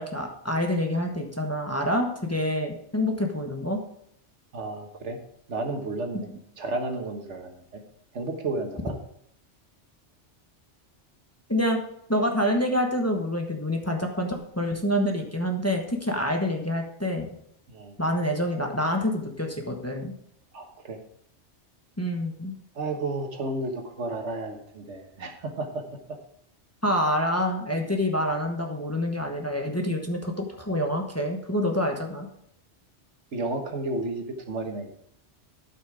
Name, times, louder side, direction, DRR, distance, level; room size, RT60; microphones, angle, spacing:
voice 1, 0.0-3.8 6.3-6.4 11.5-11.8 12.1-17.3 18.0-20.1 22.0-22.5 26.8-32.3, equal, 15° left, 2 dB, 1.1 m, -27 dB
voice 2, 4.5-5.2 5.5-6.3 6.6-7.8 8.1-9.0 17.7-17.9 20.5-21.0 22.7-25.8 33.3-34.9, right 2 dB, 80° right, 4 dB, 1.6 m, -32 dB
12.5 x 5.9 x 4.8 m, 0.71 s
omnidirectional pair, 1.2 m